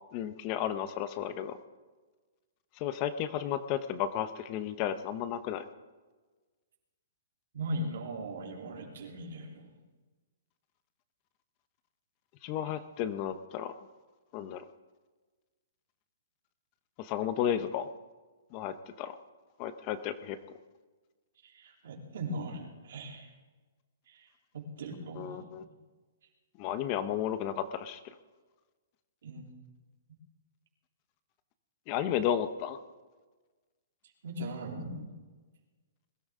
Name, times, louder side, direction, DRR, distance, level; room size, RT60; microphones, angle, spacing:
voice 1, 0.1-1.6 2.8-5.6 12.4-13.7 14.3-14.6 17.0-17.9 18.5-19.2 19.6-20.4 25.2-25.6 26.6-28.1 31.9-32.8, left 10 dB, 30° left, 12 dB, 0.7 m, -33 dB
voice 2, 7.5-9.7 21.4-23.3 24.1-25.5 29.2-29.5 34.0-35.1, right 1 dB, 70° right, 0 dB, 3.3 m, -39 dB
21.5 x 12.5 x 3.7 m, 1.3 s
hypercardioid pair, 160°, 0 cm